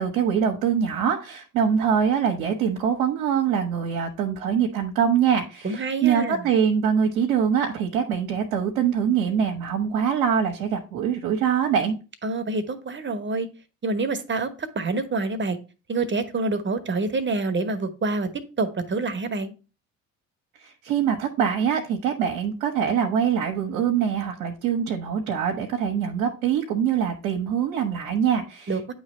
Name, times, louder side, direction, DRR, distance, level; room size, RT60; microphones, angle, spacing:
voice 1, 0.0-11.9 20.6-28.9, right 7 dB, 80° right, 1.0 m, -24 dB
voice 2, 5.6-6.5 12.2-13.5 13.8-15.6 15.9-19.5 28.7-28.9, right 3 dB, 30° right, 1.1 m, -27 dB
8.8 x 3.2 x 4.2 m
hypercardioid pair, 50°, 40 cm